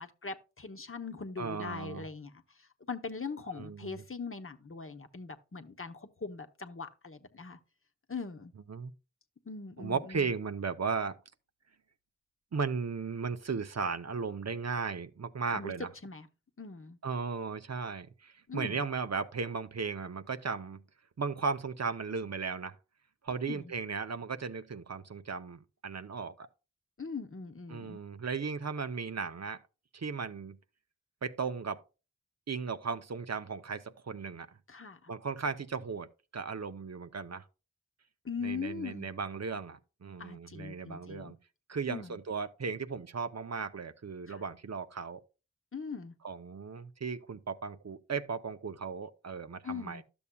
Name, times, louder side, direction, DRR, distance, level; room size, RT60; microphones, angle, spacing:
voice 1, 0.0-2.3 2.9-7.6 8.1-8.5 9.5-10.3 15.5-15.7 16.0-16.3 16.6-17.0 18.5-18.8 23.5-23.7 27.0-28.0 34.7-35.1 38.2-39.1 40.2-41.3 41.9-42.2 44.3-44.4 45.7-46.1 49.6-50.0, left 5 dB, 45° left, 0.8 m, -41 dB
voice 2, 1.4-2.1 3.5-4.0 8.7-8.9 9.8-11.2 12.5-15.9 17.0-20.8 21.2-22.8 23.2-26.5 27.7-29.6 29.9-30.6 31.2-31.8 32.5-34.5 35.1-36.1 36.3-37.4 38.4-41.4 41.7-45.2 46.2-50.0, right 5 dB, 60° right, 0.6 m, -36 dB
12.0 x 7.0 x 2.2 m
wide cardioid pair, 50°, 29 cm